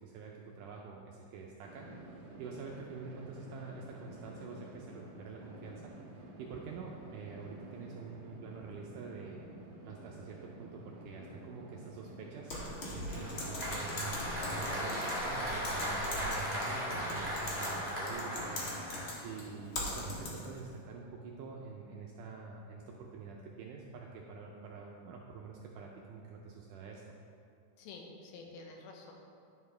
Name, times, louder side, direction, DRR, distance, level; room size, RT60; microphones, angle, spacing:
voice 1, 0.0-5.8 6.4-9.5 9.8-18.8 19.2-27.2, right 4 dB, 80° right, -1 dB, 1.8 m, -47 dB
sound 1, 1.6-13.5, right 1 dB, 65° right, 2.1 m, -51 dB
Typing, 12.5-20.6, left 1 dB, 60° left, 1.4 m, -41 dB
Applause, 12.5-19.6, equal, 10° right, 0.6 m, -37 dB
voice 2, 27.8-29.2, left 3 dB, 85° left, 1 dB, 2.8 m, -49 dB
11.0 x 7.0 x 3.3 m, 2.4 s
omnidirectional pair, 4.2 m